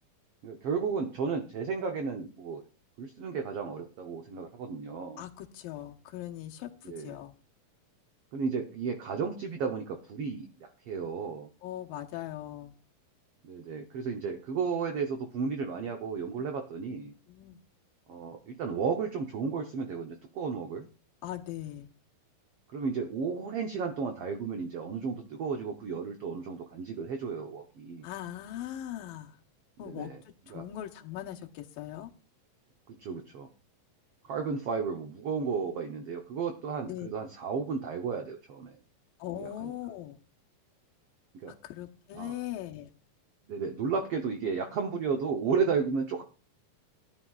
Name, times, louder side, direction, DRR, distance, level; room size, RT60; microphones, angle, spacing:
voice 1, 0.4-2.6 3.0-5.2 6.8-7.2 8.3-11.5 13.4-17.1 18.1-20.9 22.7-28.0 29.8-30.2 30.5-30.6 32.9-33.5 34.2-38.8 39.3-39.7 41.3-41.5 42.1-42.3 43.5-46.2, right 5 dB, 85° right, 4 dB, 1.3 m, -33 dB
voice 2, 5.2-7.3 11.6-12.7 17.3-17.6 21.2-21.9 28.0-29.3 29.8-30.1 30.5-32.1 36.9-37.1 39.2-40.2 41.6-42.9, left 12 dB, 85° left, 2 dB, 2.8 m, -40 dB
18.0 x 11.0 x 2.4 m, 0.34 s
omnidirectional pair, 4.0 m